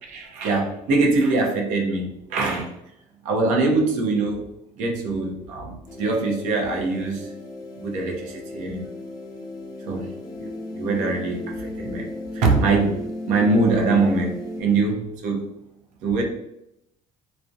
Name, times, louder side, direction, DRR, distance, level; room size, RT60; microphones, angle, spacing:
voice 1, 0.1-2.7 3.2-4.5 4.8-7.3 7.8-8.8 9.8-10.1 10.4-10.5 10.8-13.0 13.3-15.4 16.0-16.2, right 3 dB, 75° right, 1 dB, 0.6 m, -23 dB
sound 1, 5.9-14.6, left 1 dB, 30° left, 0.5 m, -35 dB
2.3 x 2.0 x 2.6 m, 0.83 s
cardioid pair, 150°, 13 cm